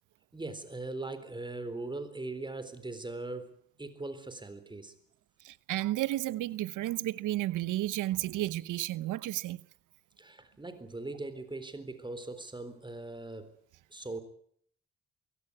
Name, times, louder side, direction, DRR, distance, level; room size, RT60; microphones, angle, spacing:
voice 1, 0.3-3.5 3.8-4.9 10.2-13.5 13.9-14.2, right 2 dB, 15° right, 3.9 m, -40 dB
voice 2, 5.4-9.6, right 15 dB, 85° right, 0.9 m, -32 dB
24.0 x 17.0 x 9.7 m
cardioid pair, 90°, 30 cm